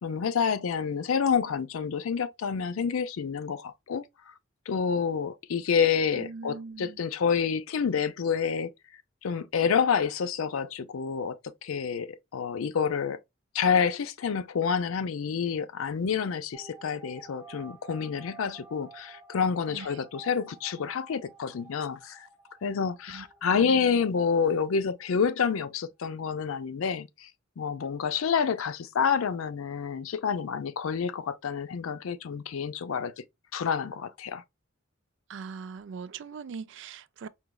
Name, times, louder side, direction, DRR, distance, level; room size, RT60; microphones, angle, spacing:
voice 1, 0.0-4.1 4.7-8.7 9.2-13.2 13.5-22.3 22.6-27.3 27.6-33.2 33.5-34.4, left 6 dB, 80° left, 0.4 m, -28 dB
voice 2, 6.1-7.0 19.7-20.0 23.1-24.0 35.3-37.3, right 5 dB, 60° right, 0.3 m, -41 dB
sound 1, 16.5-25.0 25.3-25.4 25.6-25.7, right 5 dB, 15° right, 1.6 m, -52 dB
4.9 x 2.9 x 2.2 m
head